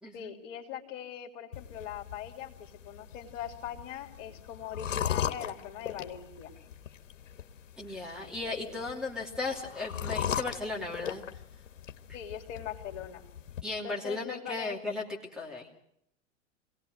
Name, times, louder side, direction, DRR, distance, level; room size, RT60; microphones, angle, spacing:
voice 1, 0.1-6.5 8.3-8.8 12.1-13.2 13.8-14.8, left 9 dB, 50° left, 3 dB, 3.0 m, -41 dB
sound 1, 1.5-13.6, left 9 dB, 75° left, 1.4 m, -39 dB
voice 2, 7.8-11.2 13.6-15.0 15.3-15.7, left 3 dB, ahead, -1 dB, 2.8 m, -36 dB
24.5 x 18.0 x 6.5 m, 0.75 s
hypercardioid pair, 110°, 38 cm